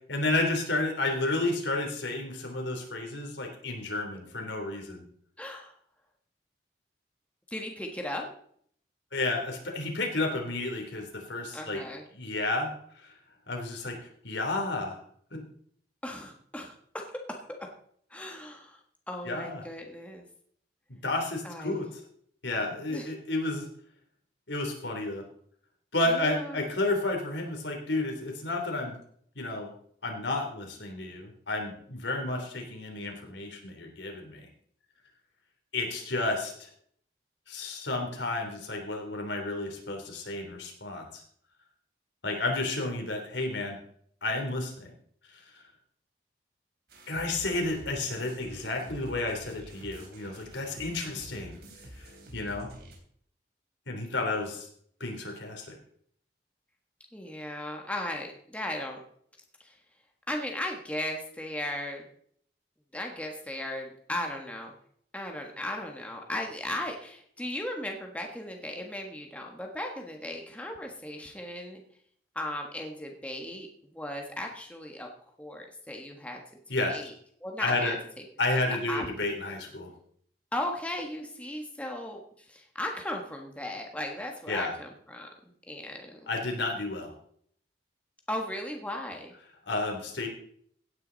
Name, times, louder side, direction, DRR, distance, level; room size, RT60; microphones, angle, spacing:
voice 1, 0.1-5.0 9.1-11.8 12.1-13.1 13.5-14.0 14.2-15.0 15.3-15.4 19.2-19.6 21.0-21.9 22.4-23.7 24.5-25.2 25.9-28.9 29.3-29.7 30.0-34.5 35.7-36.7 37.5-41.2 42.2-43.8 44.2-44.9 45.3-45.6 47.1-51.6 52.0-52.1 52.3-52.7 53.9-54.7 55.0-55.8 76.7-77.0 77.6-78.0 78.4-79.9 84.5-84.7 86.3-87.1 89.7-90.3, left 2 dB, 85° left, 2 dB, 3.4 m, -31 dB
voice 2, 5.4-5.8 7.5-8.3 11.5-12.0 16.0-17.4 18.1-20.2 21.4-21.9 22.9-23.1 26.1-26.7 57.1-59.0 59.6-59.8 60.3-62.1 62.9-64.7 65.1-71.8 72.3-73.7 73.9-75.1 75.4-76.4 76.9-77.1 77.4-78.2 78.5-79.1 80.5-85.3 85.7-86.3 88.3-89.3, left 1 dB, 5° left, 2 dB, 1.5 m, -37 dB
sound 1, 46.9-53.0, right 1 dB, 60° right, 3.8 m, -48 dB
16.5 x 9.7 x 4.1 m, 0.63 s
head